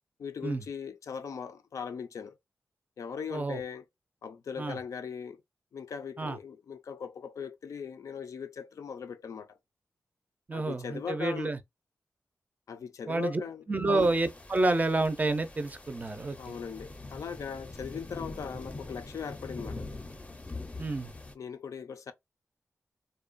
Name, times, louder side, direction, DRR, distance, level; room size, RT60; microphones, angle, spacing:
voice 1, 0.2-2.4 3.0-3.8 4.2-5.4 5.7-9.6 10.5-11.5 12.7-14.1 16.4-19.9 21.3-22.1, left 6 dB, 80° left, 0.4 m, -39 dB
voice 2, 10.5-11.6 13.1-13.4 13.7-16.6 20.8-21.1, right 2 dB, 30° right, 0.4 m, -29 dB
sound 1, 14.0-21.3, left 2 dB, 25° left, 0.5 m, -43 dB
2.6 x 2.1 x 2.5 m
wide cardioid pair, 90°, 5 cm